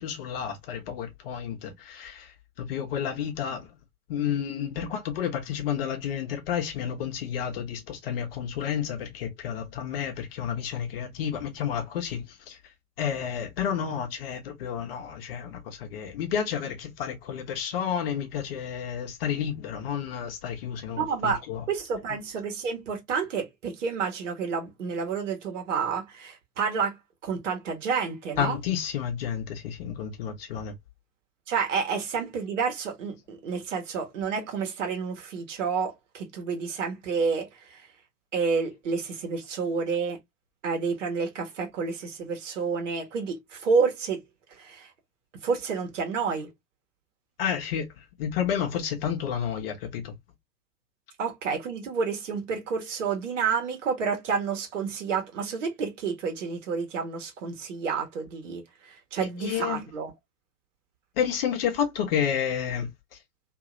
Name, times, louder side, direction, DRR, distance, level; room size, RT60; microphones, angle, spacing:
voice 1, 0.0-3.7 4.1-12.6 13.0-21.6 28.4-30.7 47.4-47.9 48.2-50.1 59.2-59.8 61.2-63.2, left 8 dB, 40° left, 0.9 m, -31 dB
voice 2, 21.0-21.4 21.7-27.0 27.2-28.6 31.5-37.8 38.3-40.2 40.6-44.2 44.6-44.9 45.4-46.5 51.2-60.1, right 5 dB, 50° right, 1.3 m, -29 dB
2.8 x 2.7 x 2.5 m
figure-of-eight pair, 105°, 46 cm